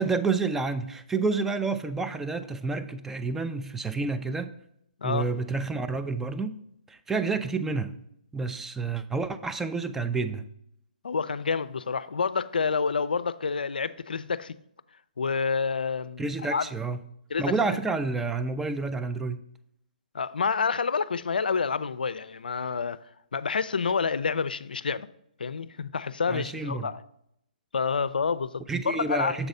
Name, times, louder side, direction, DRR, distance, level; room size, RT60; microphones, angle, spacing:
voice 1, 0.0-4.5 5.0-6.6 6.9-8.0 8.3-10.4 16.2-17.0 17.4-19.4 26.3-26.9 28.7-29.5, right 4 dB, 5° right, 0.3 m, -29 dB
voice 2, 11.0-14.5 15.2-16.6 17.3-17.4 20.1-23.0 23.3-25.1 25.4-27.0 27.7-29.4, left 5 dB, 80° left, 0.4 m, -28 dB
6.9 x 4.0 x 5.4 m
hypercardioid pair, 140°, 5 cm